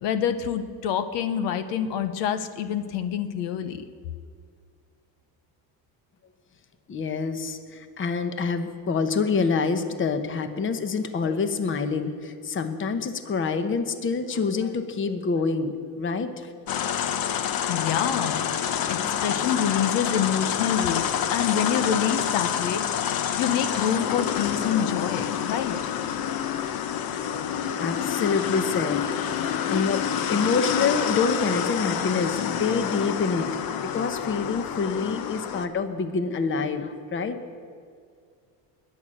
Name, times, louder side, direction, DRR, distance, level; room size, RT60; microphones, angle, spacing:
voice 1, 0.0-3.8 17.7-18.4 18.8-21.0 21.3-22.8 23.3-25.8, left 8 dB, 80° left, 9 dB, 1.1 m, -27 dB
voice 2, 6.9-16.5 27.8-33.5 33.8-37.4, left 4 dB, 30° left, 9 dB, 1.0 m, -27 dB
sound 1, 16.7-35.7, left 9 dB, 55° left, 0.9 m, -28 dB
21.0 x 8.7 x 6.5 m, 2.2 s
cardioid pair, 130°, 42 cm